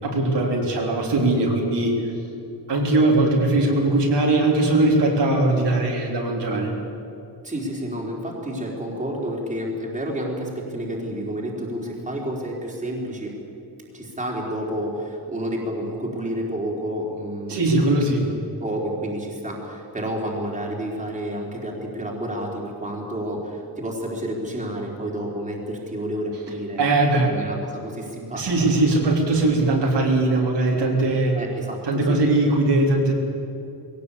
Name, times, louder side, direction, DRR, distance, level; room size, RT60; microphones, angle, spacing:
voice 1, 0.0-2.0 2.7-6.7 17.5-18.3 26.8-27.3 28.4-31.4 31.8-33.1, right 2 dB, 70° right, -1 dB, 3.8 m, -20 dB
voice 2, 7.4-13.3 13.9-17.6 18.6-26.8 27.3-28.7 31.3-32.2, right 1 dB, 15° right, -2 dB, 3.9 m, -30 dB
21.0 x 17.5 x 8.4 m, 2.7 s
wide cardioid pair, 160°, 43 cm